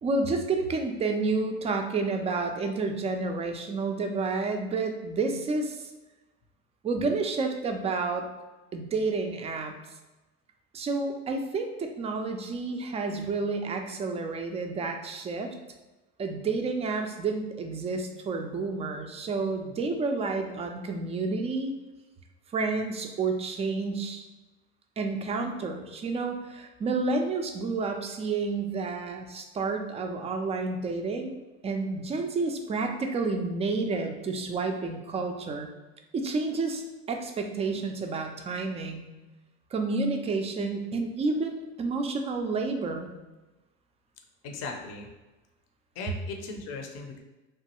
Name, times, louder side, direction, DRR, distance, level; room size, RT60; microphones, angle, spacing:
voice 1, 0.0-5.8 6.8-8.3 8.7-9.8 10.7-15.5 16.2-21.7 22.5-24.3 25.0-31.4 31.6-35.7 36.1-39.1 39.7-43.1, right 3 dB, 20° right, 4 dB, 0.3 m, -30 dB
voice 2, 44.4-45.1 45.9-47.2, left 3 dB, 45° left, 3 dB, 0.6 m, -38 dB
3.0 x 2.2 x 2.9 m, 1.1 s
hypercardioid pair, 85°, 35 cm